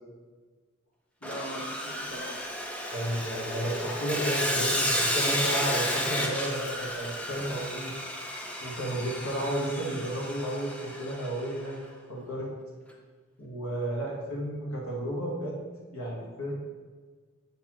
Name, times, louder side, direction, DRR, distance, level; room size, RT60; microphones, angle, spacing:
voice 1, 1.2-2.5, right 1 dB, 50° left, -6 dB, 1.3 m, -40 dB
Sawing, 1.2-11.5, equal, 5° left, 0.5 m, -32 dB
voice 2, 2.9-7.9 8.6-11.8 12.1-12.5 13.4-15.6 15.9-16.5, right 1 dB, 90° left, -3 dB, 1.5 m, -32 dB
7.8 x 4.1 x 3.0 m, 1.4 s
head